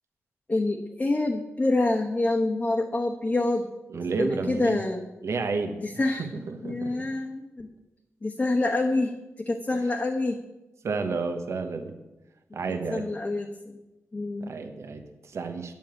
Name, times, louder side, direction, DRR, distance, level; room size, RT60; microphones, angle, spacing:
voice 1, 0.5-3.7 4.2-5.0 5.8-6.3 6.6-7.7 8.2-10.4 12.9-13.8 14.1-14.5, left 2 dB, 25° left, 0 dB, 1.1 m, -26 dB
voice 2, 3.9-4.8 5.2-5.8 6.2-7.1 9.7-9.8 10.8-11.9 12.5-13.1 14.4-15.7, right 4 dB, 65° right, 6 dB, 1.2 m, -31 dB
9.6 x 7.0 x 8.9 m, 1.0 s
wide cardioid pair, 110°, 5 cm